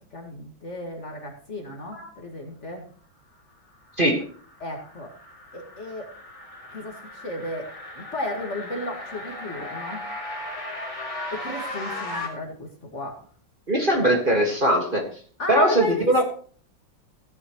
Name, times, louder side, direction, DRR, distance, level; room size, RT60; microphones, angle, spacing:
voice 1, 0.1-2.9 4.6-5.1 5.5-6.1 6.7-10.0 11.3-13.2 15.4-16.2, left 2 dB, 40° left, 2 dB, 2.2 m, -34 dB
sound 1, 3.9-12.3, left 1 dB, 15° left, 3.2 m, -37 dB
voice 2, 13.7-15.1 15.5-16.2, right 1 dB, 30° right, 1 dB, 1.9 m, -20 dB
16.0 x 10.5 x 3.1 m, 0.43 s
omnidirectional pair, 2.0 m